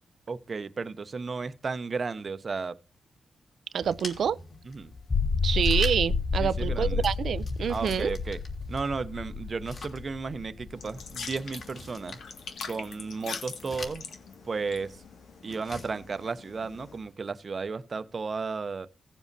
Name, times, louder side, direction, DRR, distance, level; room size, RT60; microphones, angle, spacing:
voice 1, 0.3-2.7 4.7-4.9 6.4-7.1 7.7-8.4 8.7-12.2 12.7-14.0 14.4-15.0 15.4-18.9, right 4 dB, 35° right, 0.7 m, -34 dB
voice 2, 3.7-4.4 5.4-8.1, right 8 dB, 70° right, 0.4 m, -27 dB
sound 1, 3.8-17.1, left 3 dB, 50° left, 2.7 m, -47 dB
sound 2, 4.9-11.4, left 4 dB, 25° left, 0.5 m, -30 dB
sound 3, 10.8-17.0, left 5 dB, 90° left, 1.8 m, -43 dB
17.0 x 7.2 x 2.7 m
wide cardioid pair, 150°, 0 cm